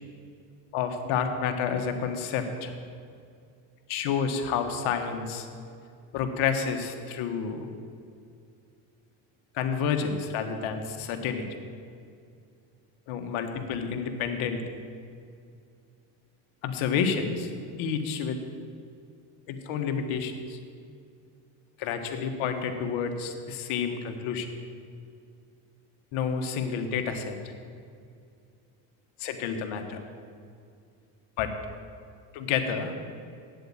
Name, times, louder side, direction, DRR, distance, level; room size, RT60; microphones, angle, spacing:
voice 1, 0.7-2.7 3.9-5.5 6.1-7.7 9.5-11.6 13.1-14.6 16.6-17.5 17.8-18.4 19.5-20.6 21.8-24.5 26.1-27.3 29.2-30.0 31.4-31.5 32.3-32.9, left 6 dB, 75° left, 6 dB, 1.4 m, -29 dB
8.5 x 7.8 x 8.7 m, 2.4 s
supercardioid pair, 95°, 48 cm